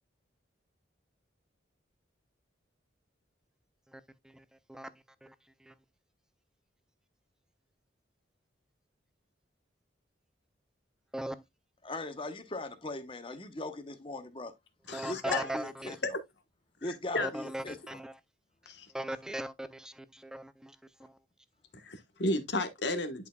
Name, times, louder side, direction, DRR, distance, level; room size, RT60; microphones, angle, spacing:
voice 1, 3.9-5.3 5.6-5.7 11.1-11.4 14.9-16.0 17.1-18.1 18.6-21.2, right 1 dB, 5° right, 0.4 m, -40 dB
voice 2, 11.8-14.5 15.1-16.0 16.8-18.0, left 2 dB, 25° left, 0.9 m, -39 dB
voice 3, 14.9-15.5 16.8-17.3 18.7-18.9 21.7-23.3, left 2 dB, 60° left, 1.2 m, -33 dB
11.0 x 4.7 x 2.3 m
head